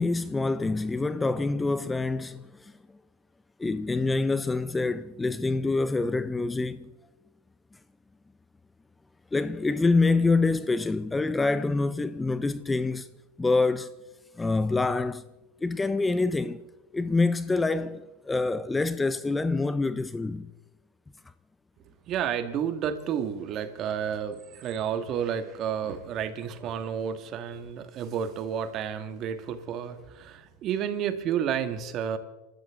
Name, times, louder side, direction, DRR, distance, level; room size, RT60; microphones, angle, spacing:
voice 1, 0.0-2.7 3.6-6.9 9.3-13.1 13.4-13.9 14.4-15.2 15.6-16.6 16.9-20.5, left 3 dB, 10° left, 0.5 m, -26 dB
voice 2, 22.1-32.2, right 8 dB, 40° right, 1.6 m, -31 dB
27.5 x 13.0 x 3.6 m
supercardioid pair, 125°, 0 cm